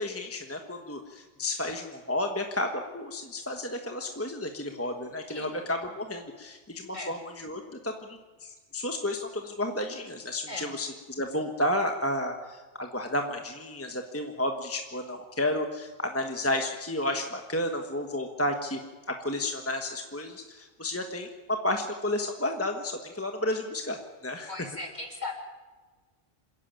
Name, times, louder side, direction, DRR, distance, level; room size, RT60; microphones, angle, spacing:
voice 1, 0.0-10.9 11.2-18.8 19.1-24.0 24.2-24.5, left 1 dB, 15° left, 4 dB, 1.2 m, -32 dB
voice 2, 24.5-25.3, left 2 dB, 45° left, 1 dB, 3.1 m, -37 dB
27.0 x 11.0 x 9.0 m, 1.3 s
omnidirectional pair, 1.1 m